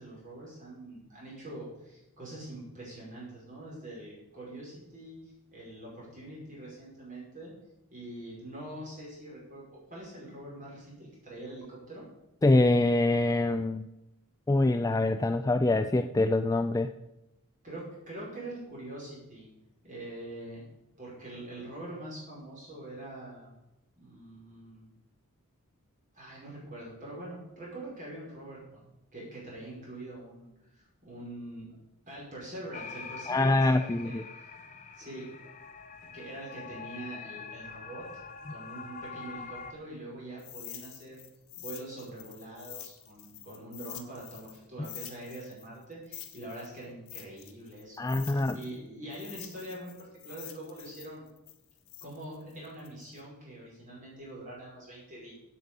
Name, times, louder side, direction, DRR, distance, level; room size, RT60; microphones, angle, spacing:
voice 1, 0.0-7.5 7.9-9.6 9.9-12.1 17.6-19.5 19.8-20.6 21.0-23.5 24.0-24.9 26.1-31.7 32.1-34.2 34.9-35.5 36.1-38.1 38.5-41.2 41.6-51.2 52.0-55.3, right 1 dB, 35° right, -5 dB, 5.3 m, -44 dB
voice 2, 12.4-13.9 14.5-16.9 33.3-34.2 48.0-48.6, left 2 dB, 15° left, 9 dB, 0.3 m, -25 dB
sound 1, 32.7-39.7, left 5 dB, 35° left, 1.0 m, -44 dB
sound 2, 40.4-44.6 44.8-48.8 49.1-53.2, left 13 dB, 65° left, 1.4 m, -47 dB
9.0 x 8.1 x 8.2 m, 0.92 s
head